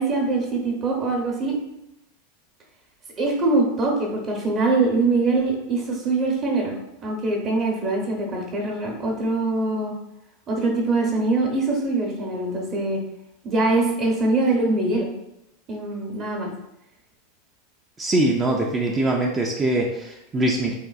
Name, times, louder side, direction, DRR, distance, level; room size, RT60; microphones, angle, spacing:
voice 1, 0.0-1.5 3.2-6.8 7.0-9.9 10.5-13.0 13.4-15.1 15.7-16.5, right 3 dB, 35° right, 0 dB, 0.9 m, -23 dB
voice 2, 18.0-20.7, right 1 dB, 20° right, 0 dB, 0.4 m, -22 dB
3.5 x 2.6 x 2.4 m, 0.86 s
hypercardioid pair, 115°, 0 cm